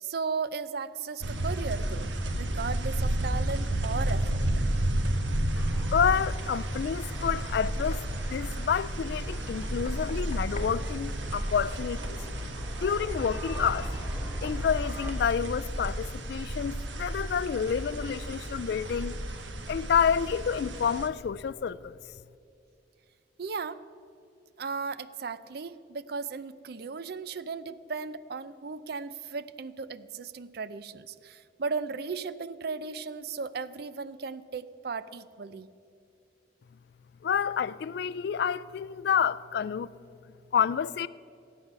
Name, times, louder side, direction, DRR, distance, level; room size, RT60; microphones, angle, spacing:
voice 1, 0.0-4.4 23.4-23.8 24.6-35.7, right 5 dB, 55° right, 0.5 m, -36 dB
sound 1, 1.2-21.1, right 1 dB, 80° right, 1.2 m, -32 dB
sound 2, 5.6-15.1, equal, 10° right, 2.3 m, -42 dB
voice 2, 5.9-8.0 8.3-12.2 12.8-14.1 14.4-19.2 19.7-22.0 37.2-39.9 40.5-41.1, left 7 dB, 60° left, 0.3 m, -29 dB
Knock, 7.0-8.2 9.6-10.8 12.8-13.0 13.6-13.8 14.4-14.7, left 3 dB, 40° left, 1.0 m, -48 dB
18.5 x 9.0 x 6.8 m
head